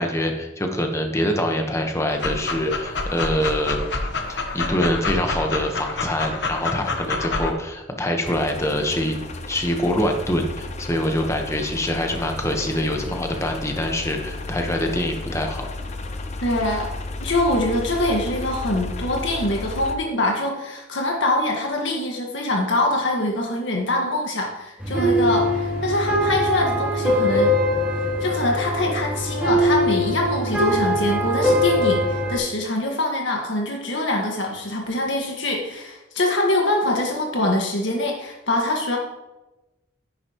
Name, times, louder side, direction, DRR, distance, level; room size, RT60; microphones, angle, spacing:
voice 1, 0.0-3.8 4.3-9.2 9.5-15.7, left 1 dB, 15° left, 4 dB, 1.2 m, -24 dB
Dog, 2.1-7.5, left 3 dB, 65° left, 1.1 m, -27 dB
sound 1, 8.2-20.0, left 2 dB, 40° left, 0.7 m, -33 dB
voice 2, 16.4-16.9 17.2-27.6 28.2-39.0, left 1 dB, 85° left, 0 dB, 1.8 m, -24 dB
sound 2, 24.8-32.4, equal, 10° right, 3.0 m, -22 dB
10.0 x 10.0 x 3.1 m, 1.0 s
head